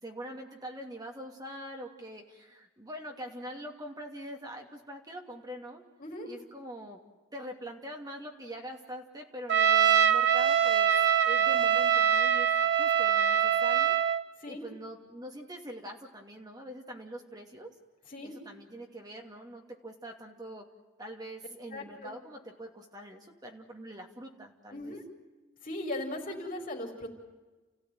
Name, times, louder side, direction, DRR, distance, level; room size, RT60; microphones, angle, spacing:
voice 1, 0.0-5.8 6.2-7.0 7.3-11.0 11.2-12.5 12.8-14.0 14.5-17.7 18.2-20.7 21.0-24.9, equal, 20° right, 2 dB, 2.7 m, -44 dB
Trumpet, 9.5-14.2, right 9 dB, 55° right, 1.0 m, -24 dB
voice 2, 21.7-22.1 24.7-25.0 25.6-27.1, left 1 dB, 40° left, 1 dB, 4.8 m, -38 dB
30.0 x 16.0 x 9.4 m, 1.2 s
head